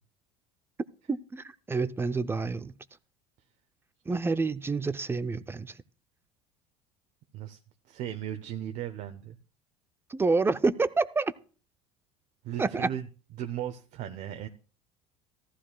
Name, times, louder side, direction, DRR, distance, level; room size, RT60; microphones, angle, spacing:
voice 1, 1.1-2.7 4.1-5.7 10.1-11.3 12.6-12.9, right 3 dB, 15° right, 0.5 m, -28 dB
voice 2, 7.8-9.4 12.4-13.1 13.4-14.5, right 11 dB, 60° right, 0.8 m, -36 dB
14.5 x 12.5 x 2.3 m
supercardioid pair, 105°, 15 cm